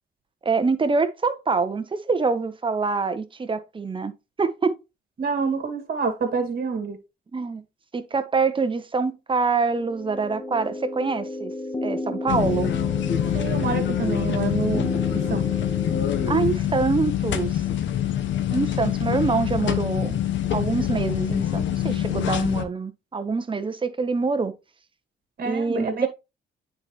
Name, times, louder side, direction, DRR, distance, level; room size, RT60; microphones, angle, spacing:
voice 1, 0.4-4.1 4.4-4.7 7.3-7.6 7.9-11.5 11.8-12.7 16.3-17.6 18.5-20.2 20.5-24.5 25.4-26.1, right 4 dB, 25° right, 0.9 m, -25 dB
voice 2, 5.2-7.0 13.3-15.0 15.3-15.5 25.4-26.1, right 5 dB, 50° right, 1.9 m, -27 dB
sound 1, 9.7-16.3, left 2 dB, 25° left, 1.0 m, -33 dB
sound 2, 12.3-22.6, left 11 dB, 70° left, 0.9 m, -25 dB
8.8 x 4.3 x 3.0 m
cardioid pair, 90°, 20 cm